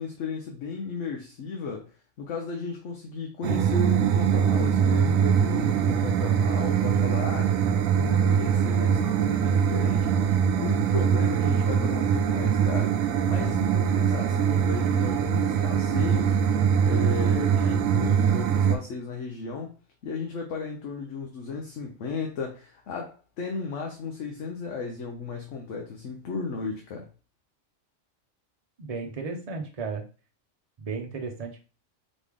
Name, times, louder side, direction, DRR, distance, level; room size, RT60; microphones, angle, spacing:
voice 1, 0.0-1.9 2.2-7.6 7.9-16.4 16.8-19.7 20.0-27.1, left 4 dB, 65° left, 2 dB, 1.0 m, -34 dB
sound 1, 3.4-18.8, right 7 dB, 85° right, 1.0 m, -23 dB
voice 2, 28.8-30.0 30.8-31.6, right 4 dB, 35° right, 2 dB, 0.8 m, -34 dB
4.1 x 3.3 x 3.5 m, 0.35 s
omnidirectional pair, 1.4 m